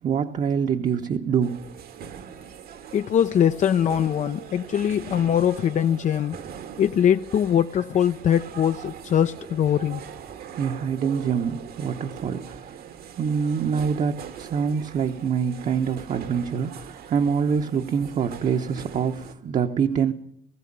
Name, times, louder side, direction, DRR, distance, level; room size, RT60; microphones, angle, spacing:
voice 1, 0.0-1.7 10.6-12.9 13.1-20.1, right 6 dB, 45° right, 1.2 m, -25 dB
sound 1, 1.4-19.3, right 8 dB, 65° right, 1.7 m, -41 dB
voice 2, 2.9-6.4 6.8-10.0, left 9 dB, 45° left, 0.7 m, -22 dB
19.5 x 15.5 x 8.8 m
cardioid pair, 110°, 17 cm